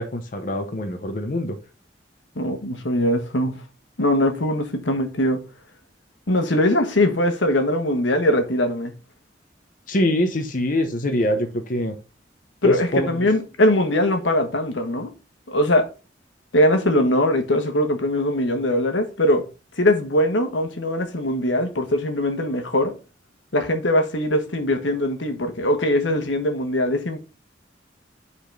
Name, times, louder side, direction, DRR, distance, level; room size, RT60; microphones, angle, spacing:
voice 1, 0.0-1.6 9.9-12.0 12.6-13.3, left 1 dB, 45° left, 0.9 m, -24 dB
voice 2, 2.4-3.6 4.0-5.4 6.3-8.9 12.6-15.1 15.5-15.9 16.5-19.4 19.8-22.9 23.5-27.2, left 1 dB, 85° left, 1.3 m, -21 dB
5.3 x 4.2 x 6.0 m
head